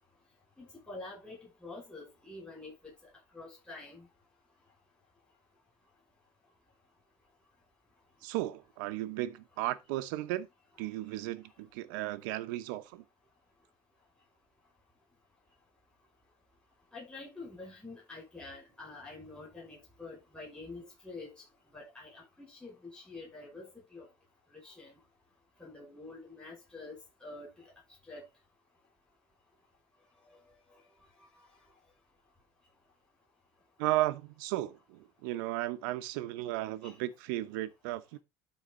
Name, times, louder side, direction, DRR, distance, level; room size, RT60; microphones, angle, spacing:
voice 1, 0.6-2.7 3.3-4.1 16.9-21.4 21.7-24.1 24.5-24.9 25.6-27.5 28.1-28.2 36.8-37.0, left 3 dB, 10° left, 5.5 m, -47 dB
voice 2, 8.2-10.5 10.8-13.0 33.8-38.2, right 16 dB, 90° right, 0.9 m, -35 dB
12.5 x 4.3 x 3.8 m
cardioid pair, 120°, 10 cm